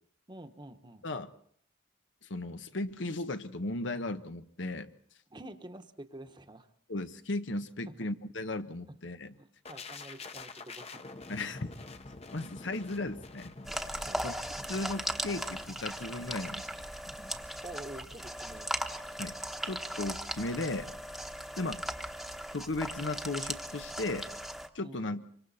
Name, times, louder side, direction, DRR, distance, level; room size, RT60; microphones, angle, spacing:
voice 1, 0.3-1.1 5.3-6.7 7.9-8.0 8.9-9.0 9.4-11.3 14.0-14.3 17.6-18.7 24.8-25.1, right 1 dB, 25° right, 8 dB, 1.1 m, -48 dB
voice 2, 2.2-4.9 6.9-9.3 11.3-11.7 12.3-13.5 14.2-14.3 14.7-16.7 19.2-19.4 19.6-20.9 21.6-21.8 22.5-24.3 24.7-25.2, left 2 dB, 85° left, 9 dB, 1.2 m, -36 dB
sound 1, 9.6-19.5 19.8-20.0, left 3 dB, 35° left, 0.9 m, -49 dB
sound 2, 13.6-24.7, equal, ahead, 1.1 m, -38 dB
25.5 x 25.0 x 4.2 m, 0.62 s
head